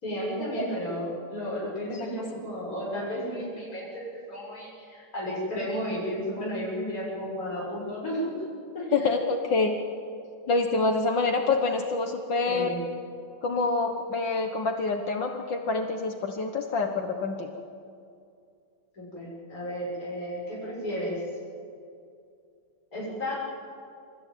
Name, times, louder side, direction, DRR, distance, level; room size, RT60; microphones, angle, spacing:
voice 1, 0.0-8.3 8.7-9.1 12.5-12.8 18.9-21.2 22.9-23.3, equal, 40° left, -7 dB, 6.9 m, -33 dB
voice 2, 8.9-9.8 10.5-12.7 13.4-17.5, left 3 dB, 65° left, 4 dB, 1.9 m, -26 dB
27.0 x 14.0 x 9.2 m, 2.4 s
omnidirectional pair, 2.3 m